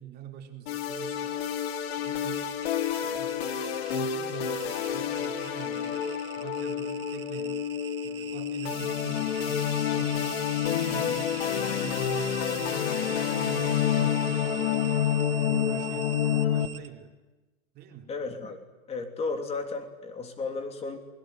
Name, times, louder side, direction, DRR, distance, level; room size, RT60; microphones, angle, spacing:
voice 1, 0.0-1.5 2.0-2.5 3.0-7.7 8.0-11.4 11.8-14.8 15.3-17.2 17.7-18.1, right 9 dB, 25° right, 3 dB, 4.1 m, -44 dB
sound 1, 0.7-16.7, left 9 dB, 45° left, 2.6 m, -29 dB
sound 2, 2.0-16.9, right 10 dB, 80° right, 2.9 m, -42 dB
voice 2, 18.1-18.6 18.9-21.0, left 3 dB, 15° left, 7 dB, 3.2 m, -34 dB
27.0 x 22.5 x 9.6 m, 1.1 s
hypercardioid pair, 155°, 41 cm